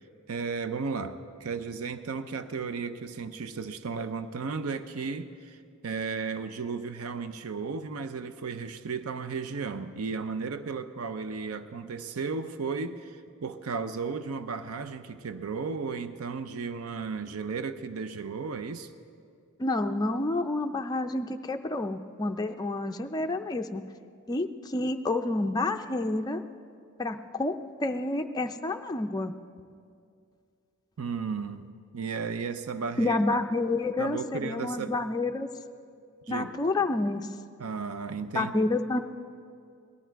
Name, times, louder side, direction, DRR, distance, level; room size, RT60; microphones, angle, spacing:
voice 1, 0.3-5.6 5.8-18.9 31.0-33.2 34.0-35.0 36.3-36.5 37.6-38.5, right 5 dB, 85° right, 11 dB, 0.6 m, -34 dB
voice 2, 19.6-23.8 24.3-26.4 27.0-29.3 33.0-35.5 36.3-37.3 38.3-39.0, left 2 dB, 20° left, 5 dB, 0.4 m, -29 dB
18.5 x 12.5 x 4.6 m, 2.3 s
head